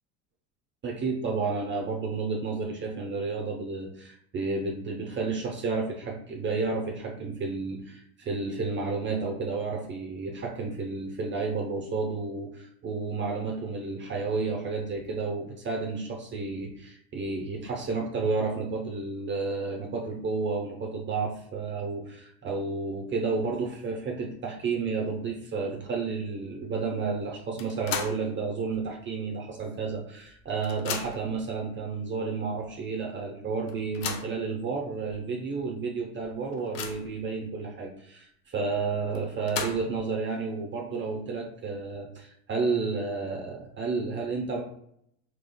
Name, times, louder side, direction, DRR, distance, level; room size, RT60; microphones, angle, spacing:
voice 1, 0.8-44.6, right 4 dB, 30° right, 1 dB, 0.7 m, -31 dB
sound 1, 27.6-28.3 28.7-28.8 29.9-30.0 30.3-31.4 32.1-32.2 32.6-32.7 33.7-34.4 35.1-35.2 35.6-35.7 36.2-37.2 39.1-40.1, left 6 dB, 75° left, 0.6 m, -36 dB
3.5 x 3.0 x 2.2 m, 0.71 s
hypercardioid pair, 90°, 39 cm